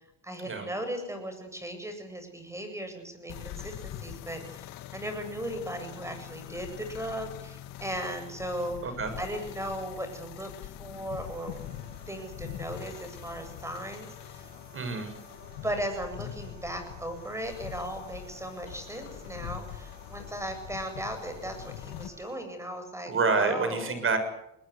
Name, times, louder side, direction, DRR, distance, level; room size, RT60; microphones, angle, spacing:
voice 1, 0.2-14.5 15.6-24.0, right 1 dB, 10° right, 7 dB, 8.0 m, -37 dB
sound 1, 3.3-22.1, left 12 dB, 65° left, 1.8 m, -43 dB
voice 2, 8.8-9.1 14.7-15.1 23.1-24.2, right 4 dB, 35° right, 9 dB, 6.8 m, -27 dB
sound 2, 11.2-22.4, right 1 dB, 80° right, 6.3 m, -54 dB
20.5 x 20.5 x 8.3 m, 0.83 s
supercardioid pair, 85°, 36 cm